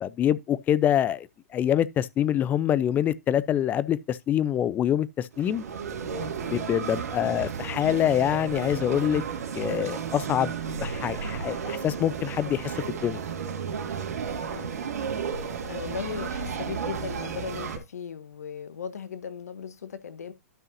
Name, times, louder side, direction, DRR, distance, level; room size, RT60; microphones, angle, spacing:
voice 1, 0.0-5.6 6.4-9.2 9.5-13.2, left 10 dB, 20° left, 0.5 m, -25 dB
sound 1, 5.3-17.8, right 6 dB, 80° right, 2.2 m, -33 dB
voice 2, 6.7-7.1 14.5-20.3, left 7 dB, 80° left, 1.1 m, -38 dB
12.5 x 5.5 x 2.6 m
hypercardioid pair, 130°, 8 cm